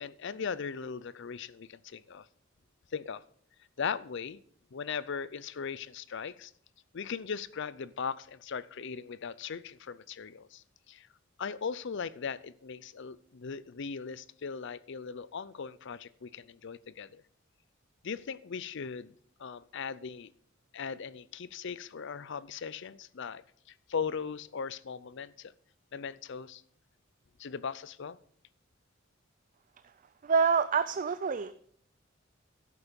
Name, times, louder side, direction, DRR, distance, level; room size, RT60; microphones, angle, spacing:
voice 1, 0.0-2.3 2.9-3.2 3.8-4.4 4.7-6.5 6.9-11.1 11.4-17.2 18.0-19.1 19.4-20.3 20.7-23.4 23.9-25.5 25.9-26.6 27.4-28.2, left 6 dB, 60° left, 18 dB, 0.5 m, -38 dB
voice 2, 30.2-31.5, right 5 dB, 40° right, 12 dB, 0.4 m, -27 dB
11.5 x 8.5 x 5.2 m, 0.62 s
head